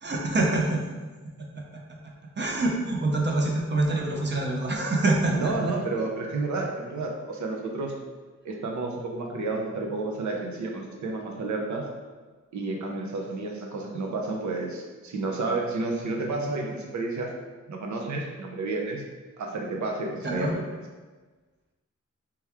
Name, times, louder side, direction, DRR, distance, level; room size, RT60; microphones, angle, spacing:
voice 1, 0.0-0.8 1.2-1.8 2.4-5.7 20.2-20.5, right 2 dB, 40° right, 0 dB, 0.6 m, -26 dB
voice 2, 5.3-7.9 8.4-11.8 12.5-17.3 17.7-19.0 19.4-20.6, right 3 dB, 75° right, 1 dB, 0.6 m, -31 dB
3.4 x 3.0 x 3.4 m, 1.3 s
wide cardioid pair, 175°, 29 cm